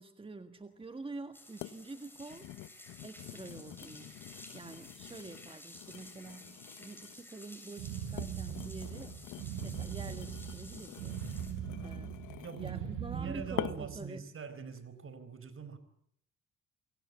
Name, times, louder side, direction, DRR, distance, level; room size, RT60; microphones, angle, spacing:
voice 1, 0.0-2.5 3.0-9.2 9.6-12.2 12.5-14.2, right 3 dB, 20° right, 1.7 m, -47 dB
sound 1, 0.8-0.9 1.6-1.8 2.2-7.3 7.9-12.9 13.6-14.0 14.6-14.8, left 14 dB, 85° left, 1.0 m, -46 dB
Waterhose-Water on pavement, 1.3-11.5, left 1 dB, 5° left, 7.8 m, -53 dB
sound 2, 7.8-14.1, right 9 dB, 85° right, 2.4 m, -40 dB
voice 2, 12.3-12.9 13.1-15.8, right 5 dB, 45° right, 4.4 m, -44 dB
28.5 x 23.5 x 8.4 m
cardioid pair, 90°, 30 cm